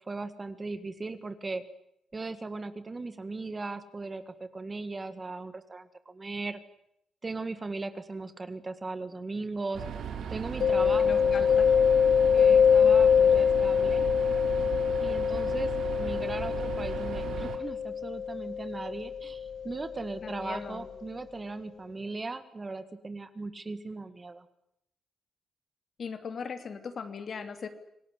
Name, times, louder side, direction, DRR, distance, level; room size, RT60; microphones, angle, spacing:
voice 1, 0.1-1.6 2.1-6.6 7.2-9.8 10.3-11.6 12.3-14.1 15.0-15.7 16.0-24.5, right 3 dB, 25° right, 11 dB, 1.8 m, -38 dB
sound 1, 9.7-17.6, right 8 dB, 75° right, 3.2 m, -37 dB
Mallet percussion, 10.6-20.2, left 7 dB, 65° left, 2.2 m, -24 dB
voice 2, 11.0-11.8 20.2-20.9 26.0-27.7, left 5 dB, 45° left, 9 dB, 2.9 m, -39 dB
26.5 x 18.5 x 9.9 m, 0.77 s
cardioid pair, 125°, 0 cm